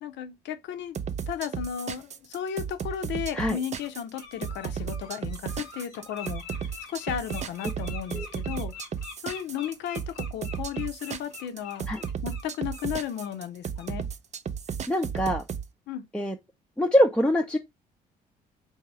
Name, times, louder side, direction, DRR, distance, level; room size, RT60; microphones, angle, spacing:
voice 1, 0.0-0.9 1.3-6.6 6.9-8.7 9.2-11.9 12.2-14.1 15.9-16.0, left 9 dB, 60° left, 0.7 m, -34 dB
sound 1, 0.9-15.6, right 7 dB, 35° right, 0.5 m, -34 dB
Bird, 2.1-2.2 2.9-3.0 3.5-3.9 4.1-12.9 13.2-13.4 13.8-13.9, left 5 dB, 85° left, 1.0 m, -45 dB
voice 2, 14.9-15.4 16.1-16.3 16.8-17.6, equal, 5° left, 0.6 m, -23 dB
3.9 x 2.7 x 4.6 m
hypercardioid pair, 50°, 21 cm